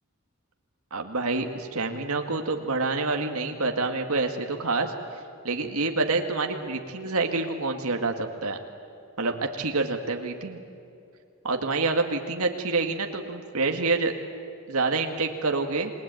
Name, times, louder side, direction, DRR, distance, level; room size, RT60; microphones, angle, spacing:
voice 1, 0.9-4.9 5.4-8.6 9.2-10.6 11.4-14.1 14.7-15.9, right 3 dB, 75° right, 4 dB, 2.0 m, -27 dB
28.5 x 20.0 x 9.2 m, 2.6 s
head